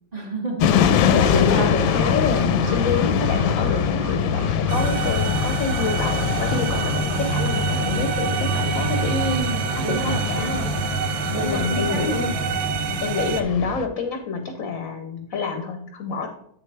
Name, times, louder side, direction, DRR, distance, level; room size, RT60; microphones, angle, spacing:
voice 1, 0.1-0.7 1.3-1.7 9.1-10.7 11.3-12.4, right 1 dB, 45° right, -2 dB, 0.5 m, -29 dB
sound 1, 0.6-13.9, left 7 dB, 90° left, 1.4 m, -24 dB
voice 2, 1.1-9.2 9.8-10.6 11.4-12.3 13.0-16.3, left 4 dB, 65° left, 5 dB, 0.8 m, -27 dB
sound 2, 1.6-7.2, right 3 dB, 30° right, 1.3 m, -40 dB
sound 3, 4.7-13.4, right 6 dB, 80° right, 1.3 m, -26 dB
8.2 x 6.6 x 3.3 m, 0.74 s
omnidirectional pair, 2.1 m